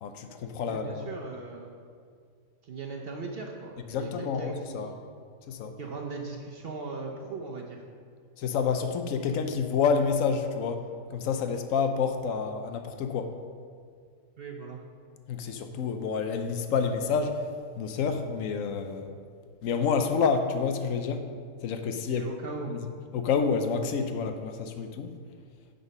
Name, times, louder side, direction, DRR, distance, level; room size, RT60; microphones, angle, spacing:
voice 1, 0.0-1.1 3.9-4.9 5.5-5.8 8.4-10.8 11.1-13.4 15.3-17.4 17.8-19.1 19.6-21.3 21.6-22.3 22.7-22.8 23.1-25.1, left 5 dB, 85° left, 7 dB, 1.0 m, -28 dB
voice 2, 0.6-1.7 2.6-5.0 5.8-7.8 14.4-14.8 22.1-22.7, right 4 dB, 55° right, 0 dB, 0.8 m, -38 dB
9.4 x 4.1 x 5.3 m, 2.1 s
omnidirectional pair, 1.4 m